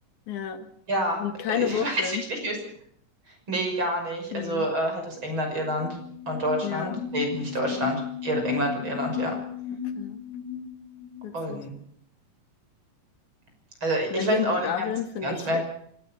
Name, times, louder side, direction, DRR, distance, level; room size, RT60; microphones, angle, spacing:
voice 1, 0.3-0.7 1.2-2.2 4.3-4.7 6.6-7.0 7.7-7.9 10.0-10.2 11.2-11.6 14.1-15.6, left 8 dB, 70° left, 9 dB, 3.1 m, -30 dB
voice 2, 0.9-1.2 1.5-2.6 3.5-6.0 6.3-9.4 11.3-11.7 13.8-14.7 15.2-15.6, right 1 dB, 35° right, 3 dB, 6.7 m, -28 dB
sound 1, 5.2-5.3 5.5-11.3, left 8 dB, 85° left, 4.7 m, -34 dB
25.5 x 17.5 x 7.1 m, 0.68 s
omnidirectional pair, 3.7 m